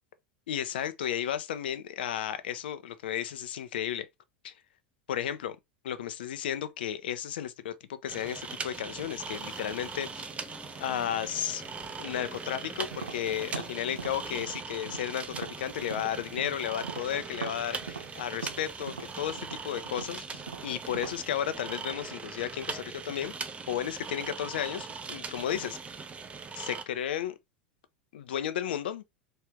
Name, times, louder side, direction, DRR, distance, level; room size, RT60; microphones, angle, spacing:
voice 1, 0.5-4.1 4.4-4.5 5.1-5.6 5.8-10.3 10.8-11.6 12.0-23.3 23.7-25.8 26.5-27.3 28.1-29.0, left 10 dB, 70° left, 0.8 m, -33 dB
sound 1, 8.1-26.8, right 5 dB, 20° right, 0.8 m, -40 dB
sound 2, 8.7-20.5, left 4 dB, 20° left, 0.9 m, -53 dB
Tap, 12.9-16.5 16.8-21.2, right 6 dB, 85° right, 0.6 m, -41 dB
4.5 x 3.2 x 3.5 m
hypercardioid pair, 85°, 6 cm